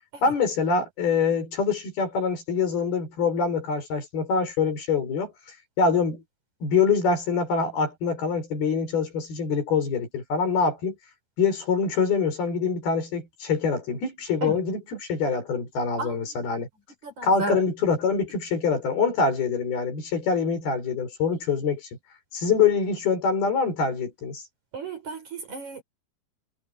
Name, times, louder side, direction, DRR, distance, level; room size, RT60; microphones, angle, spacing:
voice 1, 0.2-5.3 5.8-6.2 6.6-11.0 11.4-16.7 17.2-21.9 22.3-24.4, left 5 dB, 55° left, 7.5 m, -25 dB
voice 2, 17.0-17.6 24.7-25.8, right 3 dB, 40° right, 5.7 m, -32 dB
omnidirectional pair, 5.2 m